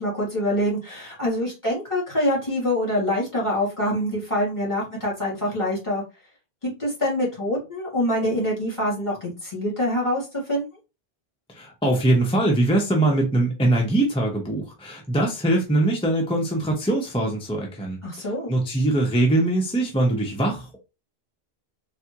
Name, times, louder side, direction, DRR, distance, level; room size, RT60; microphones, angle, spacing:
voice 1, 0.0-6.0 6.8-10.6 18.0-18.5, left 1 dB, 30° left, 2.0 m, -25 dB
voice 2, 11.5-20.8, right 1 dB, 10° left, 0.4 m, -22 dB
3.4 x 2.4 x 2.8 m
omnidirectional pair, 1.1 m